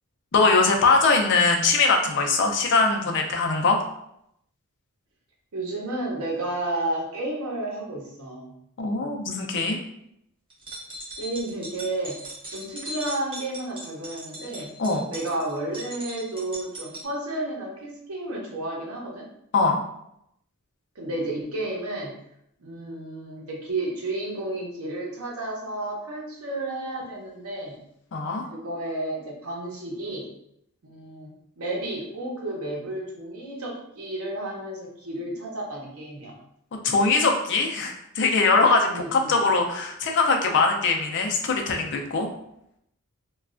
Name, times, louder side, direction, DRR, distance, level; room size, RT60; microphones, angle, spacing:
voice 1, 0.3-3.8 8.8-9.8 14.8-15.1 19.5-19.8 28.1-28.4 36.8-42.3, left 3 dB, 55° left, 2 dB, 0.5 m, -21 dB
voice 2, 5.5-8.5 11.2-12.2 12.5-14.7 15.1-19.3 20.9-22.1 22.6-27.8 28.5-30.3 30.8-36.4 38.9-39.4, right 1 dB, 70° right, -2 dB, 0.8 m, -32 dB
sound 1, 10.5-17.1, right 1 dB, 25° right, 0.8 m, -39 dB
3.1 x 2.3 x 2.4 m, 0.76 s
head